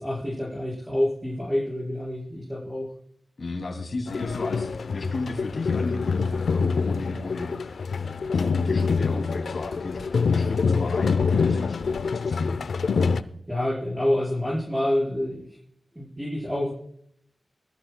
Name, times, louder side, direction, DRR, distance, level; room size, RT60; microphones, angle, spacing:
voice 1, 0.0-2.9 13.5-15.6 15.9-16.7, left 1 dB, 15° right, -7 dB, 4.8 m, -27 dB
voice 2, 3.4-12.6, left 3 dB, 65° left, 1 dB, 2.5 m, -34 dB
sound 1, 4.1-13.2, left 5 dB, 85° left, 0.5 m, -25 dB
20.0 x 13.5 x 2.2 m, 0.69 s
wide cardioid pair, 70°, 0 cm